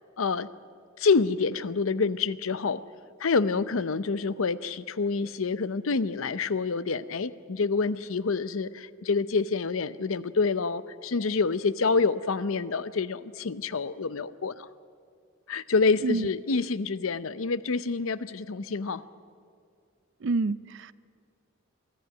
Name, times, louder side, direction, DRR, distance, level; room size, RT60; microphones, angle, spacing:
voice 1, 0.2-0.5 1.0-2.8 3.2-14.7 15.5-19.0, left 4 dB, 75° left, 15 dB, 0.7 m, -27 dB
voice 2, 20.2-20.9, right 3 dB, 60° right, 18 dB, 0.5 m, -27 dB
23.0 x 13.5 x 9.1 m, 2.3 s
head